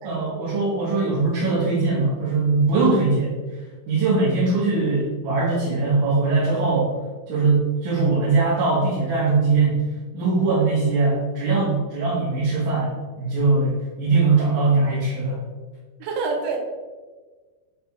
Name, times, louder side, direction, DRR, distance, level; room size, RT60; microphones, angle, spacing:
voice 1, 0.0-3.3 3.9-6.9 7.3-9.9 10.1-15.4, right 3 dB, 55° right, -8 dB, 2.7 m, -21 dB
voice 2, 16.0-16.6, right 4 dB, 85° right, 1 dB, 3.5 m, -27 dB
11.5 x 4.4 x 3.6 m, 1.4 s
omnidirectional pair, 5.3 m